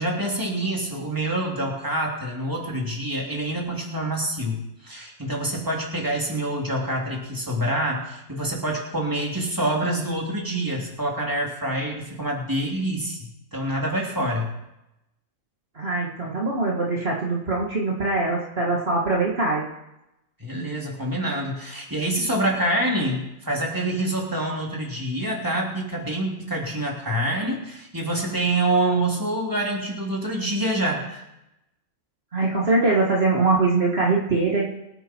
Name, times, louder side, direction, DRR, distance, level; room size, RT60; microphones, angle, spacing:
voice 1, 0.0-13.2 13.5-14.5 20.4-31.2, right 1 dB, 15° right, -2 dB, 3.3 m, -26 dB
voice 2, 15.7-19.7 32.3-34.7, right 3 dB, 50° right, -3 dB, 2.2 m, -22 dB
24.5 x 9.0 x 4.6 m, 0.88 s
omnidirectional pair, 1.4 m